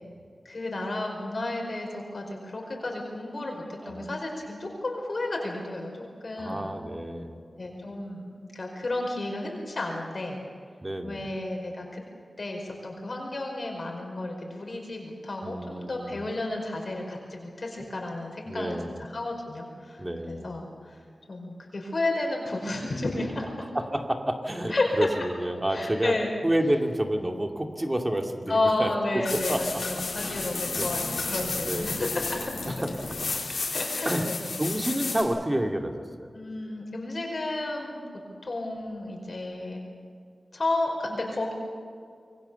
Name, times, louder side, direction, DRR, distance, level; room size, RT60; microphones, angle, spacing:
voice 1, 0.4-6.7 7.6-8.3 8.5-10.4 11.0-12.0 12.4-21.0 21.3-23.5 24.7-25.1 25.7-26.3 28.5-32.8 33.7-34.4 36.3-38.0 38.4-39.8 40.5-41.5, left 2 dB, 50° left, 1 dB, 5.0 m, -32 dB
voice 2, 6.4-7.4 10.8-11.3 15.4-16.2 18.5-19.0 20.0-20.6 23.6-26.1 26.4-30.5 30.8-30.9 31.6-32.0 32.7-33.2 33.5-33.7 34.0-34.3 34.6-36.3, right 1 dB, 20° right, 3 dB, 2.3 m, -30 dB
sound 1, 29.2-35.2, left 3 dB, 90° left, 4.7 m, -32 dB
27.0 x 22.5 x 7.0 m, 2.2 s
wide cardioid pair, 105°, 0 cm